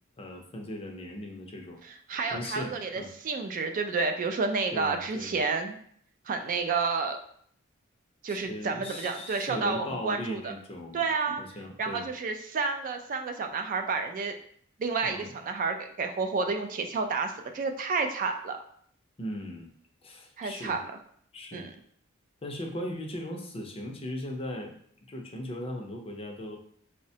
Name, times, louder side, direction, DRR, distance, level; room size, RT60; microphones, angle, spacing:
voice 1, 0.2-1.8 2.3-3.1 4.7-5.3 8.3-12.1 15.0-15.4 19.2-19.7 20.0-20.8 21.3-21.7 22.4-24.7 25.1-26.6, left 1 dB, 30° left, 2 dB, 0.5 m, -38 dB
voice 2, 2.1-5.8 6.3-7.2 8.2-10.5 10.9-11.4 11.8-14.3 14.8-18.6 20.4-20.8 21.5-21.7, right 4 dB, 40° right, 6 dB, 0.3 m, -30 dB
4.7 x 2.1 x 2.7 m, 0.62 s
head